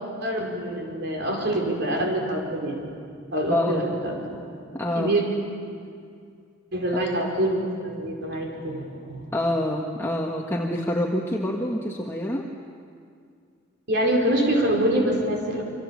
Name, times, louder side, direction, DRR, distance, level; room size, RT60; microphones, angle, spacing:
voice 1, 0.2-2.9 3.3-4.5 5.0-5.2 6.7-9.2 13.9-15.6, right 1 dB, 60° right, 0 dB, 5.3 m, -25 dB
voice 2, 3.5-3.9 4.7-5.2 6.9-7.0 9.3-12.5, left 1 dB, 15° left, -2 dB, 1.6 m, -26 dB
28.0 x 25.0 x 7.4 m, 2.3 s
head